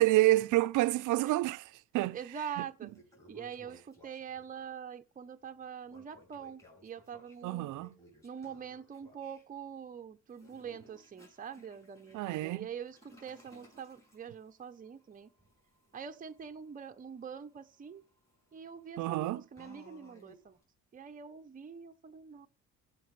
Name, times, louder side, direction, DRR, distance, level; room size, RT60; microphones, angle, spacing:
voice 1, 0.0-2.2 2.6-2.7 7.4-7.9 12.1-12.7 19.0-19.4, right 17 dB, 85° right, 0.5 m, -28 dB
Toilet flush, 2.1-2.2 2.7-4.6 5.9-9.4 10.3-20.6, equal, 10° left, 6.2 m, -61 dB
voice 2, 2.1-2.9 3.3-7.7 8.2-15.3 15.9-18.0 18.5-20.6 20.9-22.5, right 7 dB, 30° right, 0.7 m, -44 dB
15.5 x 5.9 x 3.2 m
cardioid pair, 110°, 30 cm